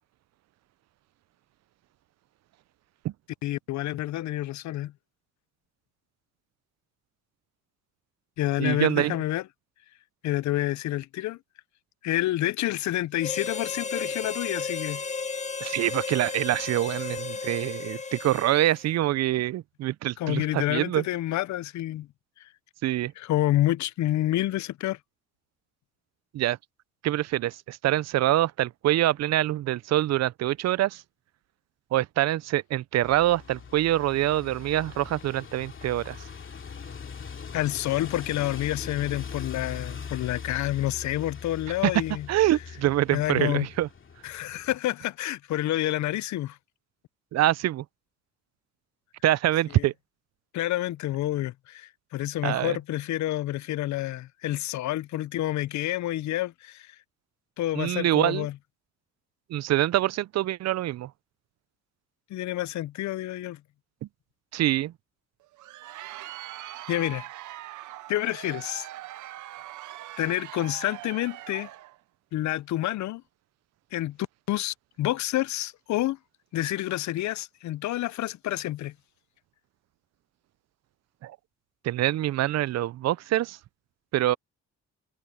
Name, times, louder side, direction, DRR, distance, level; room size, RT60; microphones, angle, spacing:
voice 1, 3.4-4.9 8.4-9.4 10.2-11.4 12.0-15.0 20.2-22.1 22.4-22.5 23.2-25.0 37.5-42.3 43.1-43.7 44.2-46.6 49.7-49.9 50.5-57.0 57.6-58.6 62.3-63.6 66.6-67.3 68.1-68.9 70.2-71.7 72.3-73.2 73.9-74.2 74.5-76.2 76.5-78.9, left 15 dB, 70° left, 0.6 m, -28 dB
voice 2, 8.6-9.2 15.6-21.0 22.8-23.1 26.3-26.6 27.0-31.0 31.9-36.2 41.8-41.9 42.3-43.9 47.3-47.8 49.2-49.9 52.4-52.8 57.8-58.5 59.5-61.1 64.5-64.9 81.2-81.3 81.8-83.6 84.1-84.4, right 14 dB, 60° right, 0.5 m, -25 dB
Harmonica, 13.2-18.8, left 4 dB, 25° left, 0.8 m, -34 dB
sound 1, 33.0-44.8, left 6 dB, 40° left, 2.6 m, -41 dB
Crowd, 65.4-72.0, right 15 dB, 80° right, 0.8 m, -41 dB
cardioid pair, 90°, 30 cm